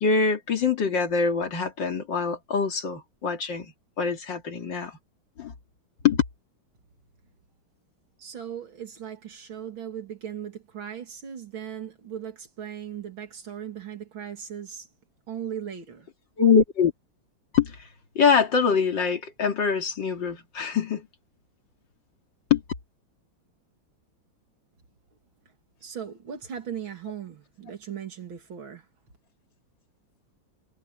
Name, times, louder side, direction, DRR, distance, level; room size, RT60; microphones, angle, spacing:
voice 1, 0.0-5.0 5.4-5.5 6.0-6.2 16.4-16.9 17.5-17.8 18.2-21.1 22.5-22.6, left 6 dB, 65° left, 2.9 m, -24 dB
voice 2, 8.2-14.9 15.3-16.1 25.8-28.8, right 9 dB, 80° right, 3.2 m, -38 dB
omnidirectional pair, 2.2 m